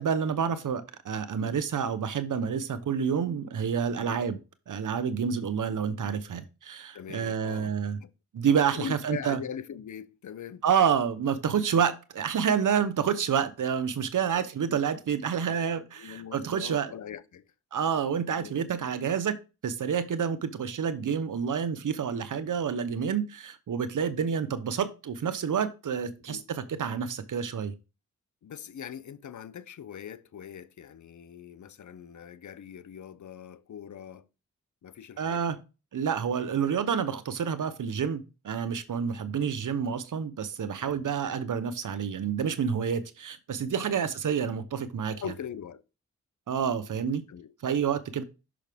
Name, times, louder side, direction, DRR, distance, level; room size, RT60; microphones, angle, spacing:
voice 1, 0.0-4.4 4.7-8.0 8.3-9.4 10.6-16.9 17.7-19.4 19.6-27.7 35.2-35.6 35.9-45.2 46.5-47.2 47.6-48.2, right 7 dB, 70° right, 0.9 m, -28 dB
voice 2, 6.9-7.7 8.0-8.1 8.7-10.6 12.4-12.5 14.3-14.5 16.0-17.5 18.3-18.5 26.3-26.5 28.4-34.3 34.8-35.6 40.8-41.0 43.8-44.0 45.2-45.8 47.3-47.5, left 8 dB, 65° left, 0.7 m, -41 dB
6.1 x 6.0 x 3.5 m
cardioid pair, 60°, 32 cm